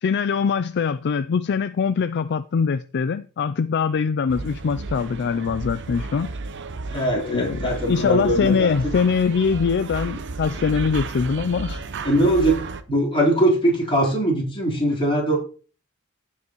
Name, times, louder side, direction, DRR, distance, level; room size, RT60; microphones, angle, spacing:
voice 1, 0.0-6.3 7.2-11.9, left 6 dB, 50° left, 0.4 m, -23 dB
sound 1, 4.3-12.8, right 3 dB, 55° right, 0.8 m, -33 dB
voice 2, 6.9-8.9 12.0-12.6 12.9-15.4, right 1 dB, 25° left, 3.8 m, -21 dB
16.0 x 5.6 x 3.0 m
head